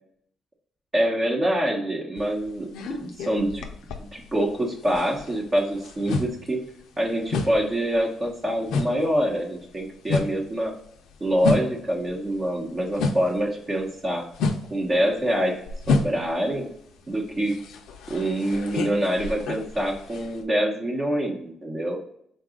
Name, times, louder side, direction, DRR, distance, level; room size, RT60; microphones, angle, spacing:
voice 1, 0.9-3.6 4.0-6.6 7.0-10.7 11.2-14.2 14.7-15.6 15.9-16.7 17.1-17.6 18.1-22.0, right 1 dB, 30° right, -1 dB, 0.9 m, -25 dB
sound 1, 2.2-4.6 4.8-13.5 13.8-20.4, left 4 dB, 85° left, 0.4 m, -30 dB
3.8 x 2.3 x 3.6 m, 0.70 s
cardioid pair, 90°, 0 cm